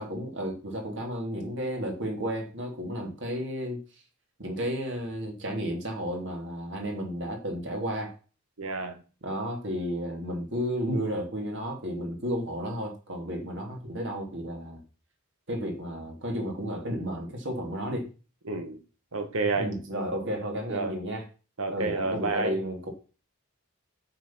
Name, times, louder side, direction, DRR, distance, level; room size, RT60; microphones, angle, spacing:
voice 1, 0.0-3.8 4.4-8.1 9.2-14.8 15.5-18.1 19.5-21.2 21.7-22.9, equal, 60° right, 3.1 m, -32 dB
voice 2, 8.6-9.0 18.5-18.8 19.1-19.7 20.7-21.0 21.6-22.6, right 3 dB, 90° right, 2.1 m, -29 dB
8.9 x 7.4 x 6.0 m
head